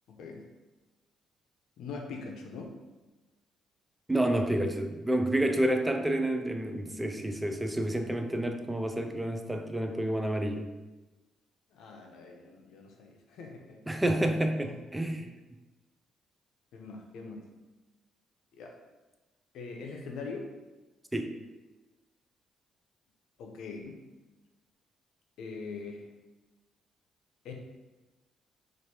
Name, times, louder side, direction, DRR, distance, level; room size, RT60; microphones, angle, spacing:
voice 1, 0.1-0.4 1.8-2.8 11.7-13.8 14.5-14.8 15.1-15.2 16.7-17.4 18.5-18.7 19.5-20.5 23.4-24.0 25.4-26.1 27.4-27.5, left 4 dB, 80° left, 2 dB, 0.6 m, -42 dB
voice 2, 4.1-10.7 13.9-15.3 21.1-21.4, right 1 dB, 10° right, 5 dB, 0.3 m, -29 dB
3.1 x 2.5 x 4.3 m, 1.1 s
cardioid pair, 105°, 0 cm